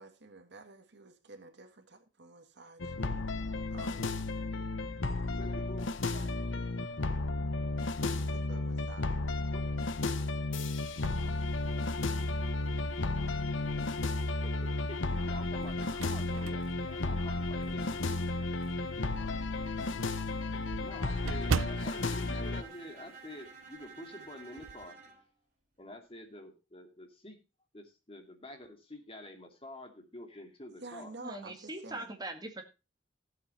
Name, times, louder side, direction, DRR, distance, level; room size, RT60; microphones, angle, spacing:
voice 1, 0.0-2.9 3.7-4.2 6.1-6.3 8.0-9.1 30.8-32.1, right 3 dB, 60° right, 1.8 m, -50 dB
sound 1, 2.8-22.6, left 2 dB, 75° left, 1.0 m, -33 dB
voice 2, 5.3-5.9 6.8-7.0 9.5-9.6 14.3-14.5 15.2-18.1 20.8-25.0 25.8-27.4 27.7-31.2, left 1 dB, 30° left, 2.5 m, -48 dB
sound 2, 10.9-12.3 12.8-12.9 14.4-14.9 15.4-18.0 18.5-18.6 19.0-19.1 19.4-19.5 19.7-23.5 23.7-24.0 24.3-24.9, right 5 dB, 85° right, 0.5 m, -40 dB
Bowed string instrument, 21.0-25.2, right 5 dB, 40° right, 4.2 m, -51 dB
voice 3, 31.2-32.6, right 2 dB, 20° right, 2.0 m, -41 dB
14.5 x 7.7 x 4.2 m
head